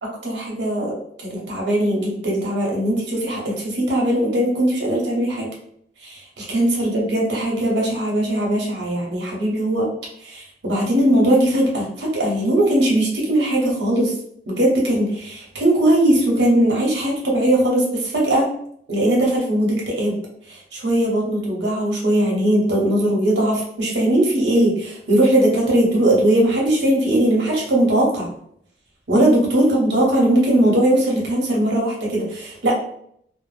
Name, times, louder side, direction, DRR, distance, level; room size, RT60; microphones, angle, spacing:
voice 1, 0.0-0.9 1.2-5.5 6.0-9.9 10.2-14.1 14.5-18.5 18.9-20.1 20.5-28.3 29.1-32.7, right 1 dB, 70° right, -2 dB, 0.8 m, -19 dB
2.1 x 2.0 x 3.1 m, 0.68 s
head